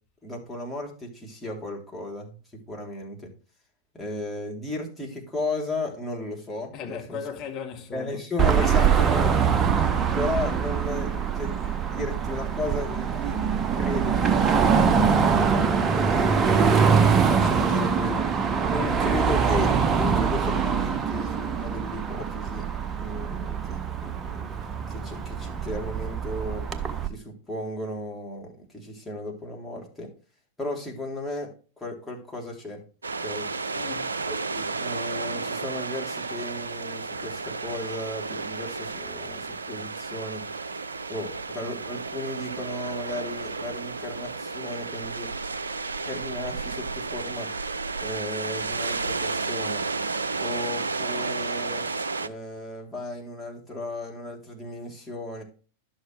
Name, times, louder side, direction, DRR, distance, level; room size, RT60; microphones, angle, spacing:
voice 1, 0.2-2.4 2.7-3.3 4.0-7.2 7.9-13.4 13.7-15.5 15.9-16.6 16.9-22.7 23.0-24.5 24.9-26.6 27.0-30.1 30.6-31.5 31.8-32.8 33.2-33.8 34.3-40.4 41.1-45.3 46.0-47.5 48.0-49.8 50.4-51.8 52.2-55.4, left 1 dB, 5° left, 3.3 m, -35 dB
voice 2, 6.7-8.2 8.6-8.7 33.7-34.2, left 7 dB, 35° left, 1.8 m, -37 dB
Car passing by / Traffic noise roadway noise / Engine, 8.4-27.1, right 6 dB, 25° right, 0.8 m, -23 dB
sound 1, 33.0-52.3, right 4 dB, 80° right, 0.4 m, -32 dB
11.5 x 6.6 x 3.3 m
figure-of-eight pair, 90°, 0 cm